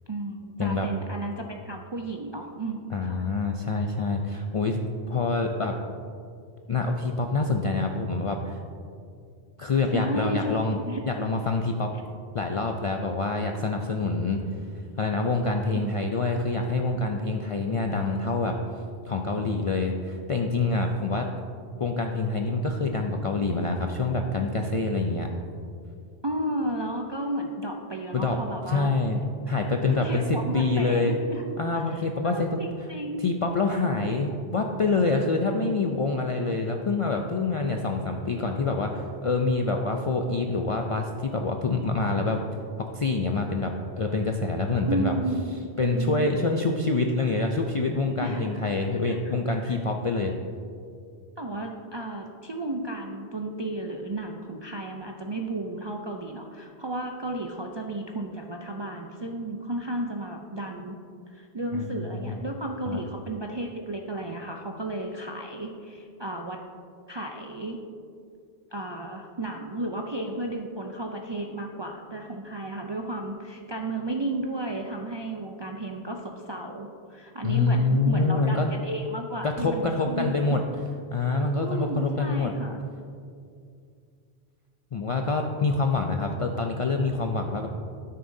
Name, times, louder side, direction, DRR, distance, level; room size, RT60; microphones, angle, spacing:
voice 1, 0.1-3.2 9.9-10.6 10.9-11.0 15.7-15.9 26.2-28.9 29.9-31.4 31.8-33.2 44.9-45.5 45.8-46.3 48.2-48.6 49.0-49.3 49.6-49.8 51.4-61.0 61.3-66.6 67.1-67.8 68.7-80.6 81.6-82.8, right 1 dB, 45° right, 1 dB, 0.3 m, -33 dB
voice 2, 2.9-4.8 5.1-5.8 6.7-8.6 9.6-10.8 11.1-11.9 12.3-14.4 15.0-18.6 19.1-21.3 21.8-25.3 28.1-28.4 28.7-29.2 29.5-31.2 31.6-32.6 33.2-42.4 42.9-45.1 45.8-50.3 61.7-62.4 62.9-63.0 77.4-78.7 79.4-80.6 81.1-82.5 84.9-87.7, left 3 dB, 55° left, 2 dB, 0.3 m, -26 dB
12.5 x 6.7 x 2.6 m, 2.4 s
omnidirectional pair, 1.1 m